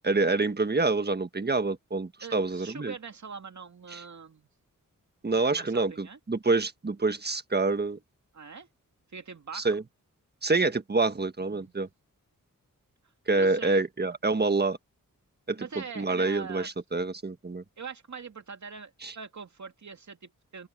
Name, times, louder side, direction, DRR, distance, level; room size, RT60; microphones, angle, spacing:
voice 1, 0.0-2.9 3.9-4.0 5.2-8.0 9.5-9.8 10.4-11.9 13.3-14.8 15.5-17.6 19.0-19.1, right 3 dB, 30° right, 1.5 m, -27 dB
voice 2, 2.2-4.5 5.3-6.2 8.3-8.7 9.1-9.7 11.5-11.7 13.3-13.8 15.6-16.7 17.8-20.7, right 5 dB, 60° right, 2.5 m, -43 dB
open air
wide cardioid pair, 90°, 33 cm